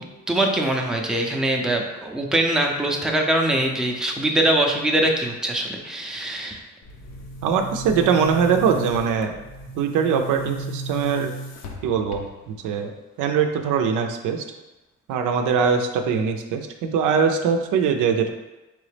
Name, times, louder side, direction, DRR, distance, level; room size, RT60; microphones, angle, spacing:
voice 1, 0.0-6.6, right 1 dB, ahead, 1 dB, 0.5 m, -23 dB
Boom, 6.8-12.6, right 1 dB, 60° left, 0.7 m, -35 dB
voice 2, 7.4-9.3 9.8-11.3 11.8-12.9 13.2-14.4 15.1-18.3, right 6 dB, 85° right, 5 dB, 0.5 m, -22 dB
3.9 x 3.3 x 3.3 m, 1.1 s
cardioid pair, 90°, 30 cm